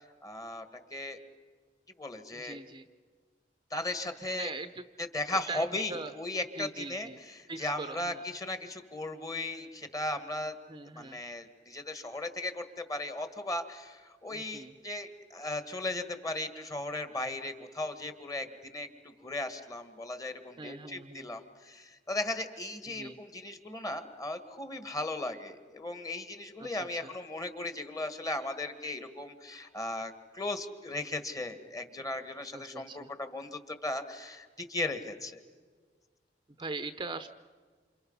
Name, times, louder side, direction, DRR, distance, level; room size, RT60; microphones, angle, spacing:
voice 1, 0.2-0.7 0.9-1.2 2.0-2.6 3.7-4.5 5.1-10.5 10.9-35.4, left 2 dB, 20° left, 8 dB, 1.8 m, -37 dB
voice 2, 2.3-2.9 4.3-4.8 5.3-6.1 6.6-7.2 7.5-8.2 10.7-11.2 14.2-14.7 20.6-21.3 22.9-23.2 26.6-27.1 32.5-33.1 36.6-37.3, right 3 dB, 25° right, 10 dB, 0.8 m, -41 dB
29.0 x 27.5 x 5.6 m, 1.5 s
head